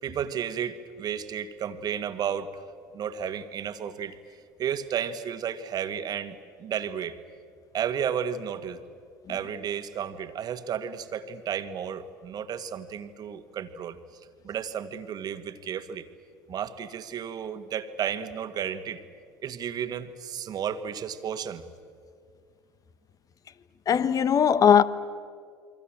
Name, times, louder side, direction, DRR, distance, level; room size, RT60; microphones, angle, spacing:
voice 1, 0.0-2.6 2.9-4.2 4.6-7.2 7.7-8.8 9.3-14.0 14.4-16.1 16.5-19.0 19.4-21.7, right 8 dB, 45° right, 1.8 m, -33 dB
voice 2, 23.9-24.8, left 8 dB, 40° left, 1.2 m, -19 dB
29.0 x 24.0 x 7.5 m
hypercardioid pair, 70°, 9 cm